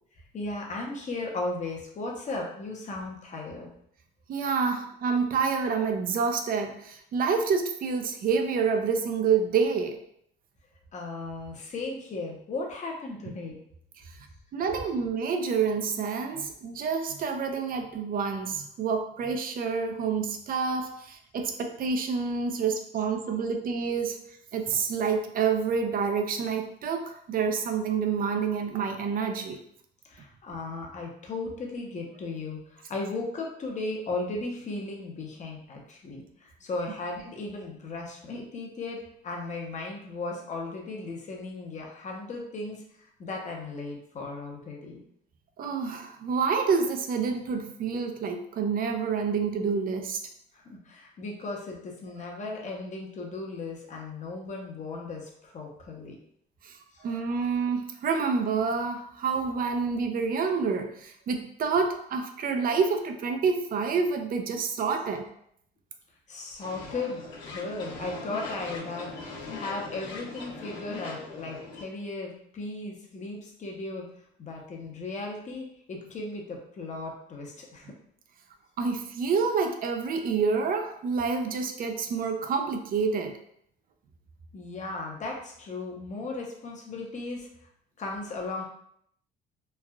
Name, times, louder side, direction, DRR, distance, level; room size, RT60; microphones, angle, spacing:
voice 1, 0.3-3.7 4.7-4.8 10.9-13.6 23.2-23.4 30.0-45.0 50.5-56.2 56.9-57.0 59.5-59.6 66.3-69.1 69.5-74.0 74.4-77.9 84.5-87.5 88.0-88.6, left 3 dB, 40° left, 0 dB, 0.7 m, -36 dB
voice 2, 4.3-10.0 14.5-24.2 24.5-29.6 45.6-50.2 56.6-56.7 57.0-65.3 78.8-83.3, right 5 dB, 50° right, 5 dB, 0.4 m, -28 dB
sound 1, 66.6-71.8, left 3 dB, 85° left, 0.9 m, -40 dB
3.2 x 2.4 x 2.2 m, 0.70 s
cardioid pair, 105°, 19 cm